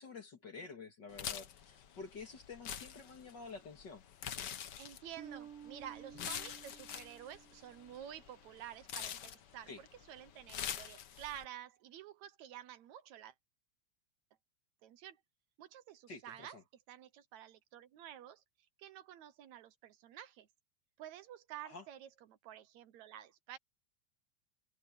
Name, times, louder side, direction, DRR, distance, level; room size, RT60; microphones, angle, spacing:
voice 1, 0.0-4.0 6.2-6.3 9.7-9.8 16.1-16.6 21.6-21.9, left 4 dB, 40° left, 2.4 m, -49 dB
sound 1, 1.1-11.4, left 9 dB, 70° left, 1.0 m, -46 dB
voice 2, 4.8-13.3 14.8-15.2 15.6-16.6 16.9-18.4 18.8-20.5 21.0-23.6, right 11 dB, 75° right, 2.3 m, -51 dB
Bass guitar, 5.2-8.2, right 9 dB, 55° right, 2.3 m, -53 dB
open air
omnidirectional pair, 3.3 m